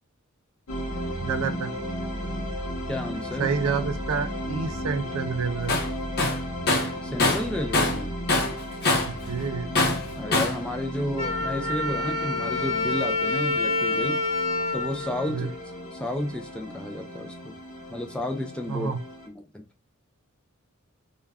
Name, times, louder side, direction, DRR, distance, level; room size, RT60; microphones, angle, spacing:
sound 1, 0.7-19.3, equal, 90° left, 0.8 m, -35 dB
voice 1, 1.2-1.7 3.4-5.7 9.0-9.7 15.3-15.5 18.7-19.0, right 5 dB, 75° right, 0.4 m, -28 dB
voice 2, 2.9-3.5 7.0-8.1 10.2-14.2 14.7-15.5 15.9-17.5 17.9-18.9 19.3-19.6, left 1 dB, 5° left, 0.3 m, -32 dB
Tools, 5.7-5.9 6.2-8.0 8.3-9.2 9.8-10.6, left 2 dB, 50° left, 0.7 m, -23 dB
Wind instrument woodwind instrument, 11.2-16.0, left 2 dB, 30° right, 0.9 m, -28 dB
2.3 x 2.2 x 3.3 m
head